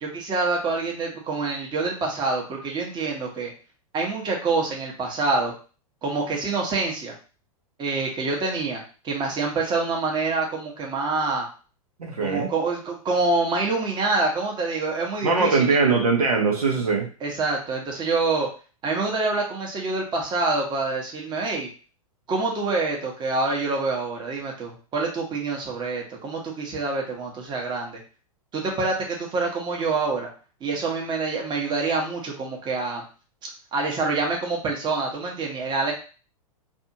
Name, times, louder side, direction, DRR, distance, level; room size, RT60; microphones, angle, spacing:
voice 1, 0.0-3.5 3.9-5.5 6.0-7.1 7.8-11.5 12.2-15.9 17.2-18.5 18.8-21.7 22.3-28.0 28.5-30.3 30.6-33.0 33.7-35.9, right 3 dB, 25° right, 0 dB, 0.9 m, -26 dB
voice 2, 12.0-12.5 15.2-17.1, right 4 dB, 90° right, 0 dB, 0.8 m, -21 dB
2.6 x 2.4 x 2.7 m, 0.37 s
hypercardioid pair, 105°, 19 cm